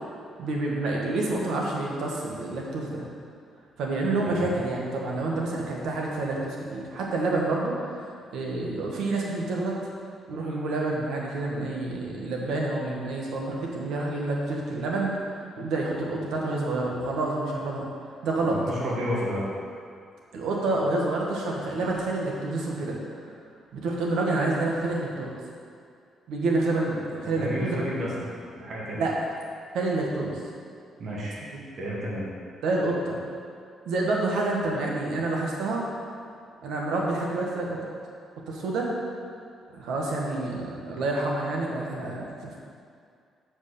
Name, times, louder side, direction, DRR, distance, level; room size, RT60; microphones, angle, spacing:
voice 1, 0.4-3.0 3.8-9.8 10.3-15.2 15.6-17.9 18.2-18.6 20.3-23.3 23.7-25.3 26.3-27.8 28.9-29.1 29.7-30.4 31.5-31.6 32.6-33.2 33.8-35.8 36.6-37.8 38.5-38.9 39.7-42.6, right 2 dB, 80° right, -2 dB, 1.6 m, -28 dB
voice 2, 18.4-19.5 27.2-29.0 31.0-31.4 31.8-32.3, equal, 55° right, -6 dB, 2.1 m, -31 dB
7.2 x 5.2 x 6.8 m, 2.3 s
cardioid pair, 90°, 0 cm